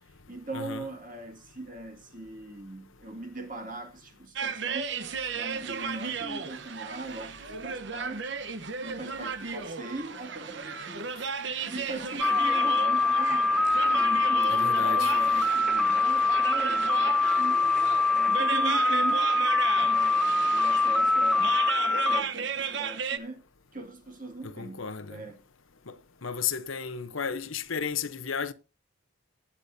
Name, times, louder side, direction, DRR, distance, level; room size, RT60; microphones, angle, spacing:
voice 1, 0.0-5.0 5.3-8.4 8.8-11.3 11.7-13.6 13.9-17.6 18.1-19.3 19.7-23.4 23.7-25.4, right 2 dB, 40° right, 2.2 m, -40 dB
voice 2, 0.5-0.8 14.5-15.1 24.4-25.2 25.9-26.0 26.2-28.5, left 6 dB, 75° left, 0.9 m, -33 dB
sound 1, 4.4-23.2, right 5 dB, 60° right, 1.0 m, -35 dB
sound 2, 12.2-22.2, left 3 dB, ahead, 0.5 m, -24 dB
18.5 x 8.4 x 2.7 m
head